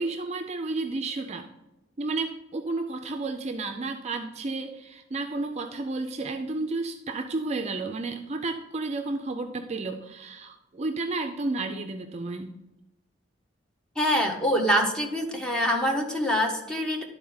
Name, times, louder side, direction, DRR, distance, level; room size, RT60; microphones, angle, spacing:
voice 1, 0.0-1.5 2.0-12.6, right 3 dB, 35° right, 6 dB, 0.5 m, -32 dB
voice 2, 14.0-17.0, equal, 5° left, 1 dB, 1.0 m, -25 dB
11.0 x 4.2 x 3.9 m, 0.97 s
head